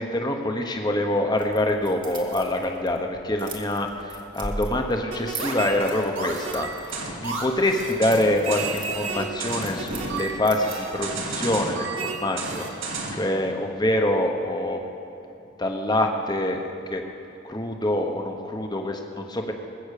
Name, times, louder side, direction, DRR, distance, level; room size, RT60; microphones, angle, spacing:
voice 1, 0.0-14.8 15.6-16.6 16.9-17.0 17.4-19.5, left 1 dB, 20° left, 3 dB, 1.1 m, -25 dB
sound 1, 1.4-11.2, right 2 dB, 25° right, 1.5 m, -41 dB
sound 2, 5.1-13.3, right 3 dB, 75° right, 2.0 m, -32 dB
20.5 x 8.0 x 6.6 m, 2.9 s
head